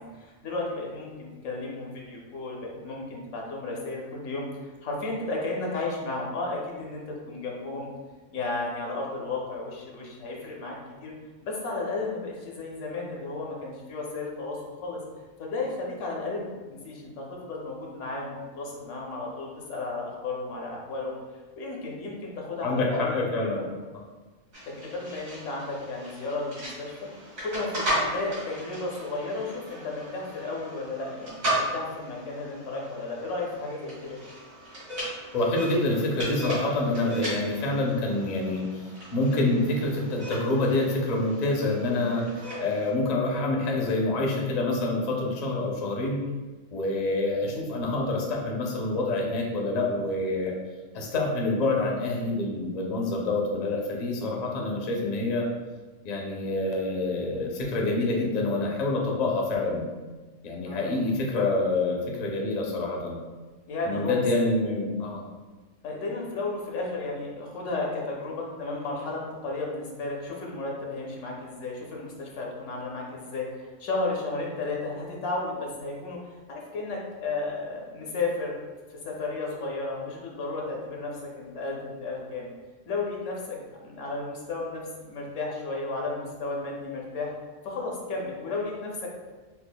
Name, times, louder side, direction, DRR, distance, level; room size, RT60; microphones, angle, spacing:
voice 1, 0.0-7.9 8.3-10.8 11.0-11.1 11.4-15.0 15.4-21.1 21.6-23.7 24.7-26.9 27.4-34.2 47.4-47.6 60.6-61.0 63.7-64.2 65.8-76.2 76.5-78.6 78.9-82.5 82.9-83.6 83.8-87.3 87.6-89.1, left 3 dB, 70° left, -2 dB, 1.0 m, -33 dB
voice 2, 22.6-23.6 35.3-38.6 39.1-46.2 46.7-50.5 50.9-55.5 56.0-59.8 60.4-63.2 63.8-65.2, left 2 dB, 50° left, -1 dB, 0.5 m, -27 dB
sound 1, 24.5-42.9, right 1 dB, 90° right, 1.9 m, -36 dB
5.8 x 2.1 x 2.2 m, 1.3 s
omnidirectional pair, 1.4 m